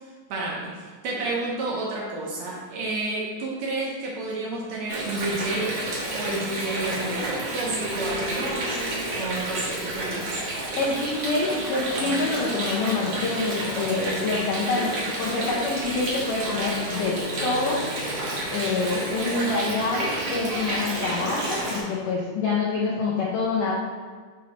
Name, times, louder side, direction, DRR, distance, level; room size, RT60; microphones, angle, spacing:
voice 1, 0.3-5.8 6.1-10.4, right 2 dB, 80° right, -4 dB, 1.5 m, -30 dB
Water, 4.9-21.8, right 1 dB, 60° right, 1.6 m, -30 dB
voice 2, 10.8-17.2 17.4-17.8 18.5-23.7, left 3 dB, 75° left, -5 dB, 2.0 m, -26 dB
6.3 x 4.3 x 4.2 m, 1.5 s
omnidirectional pair, 4.6 m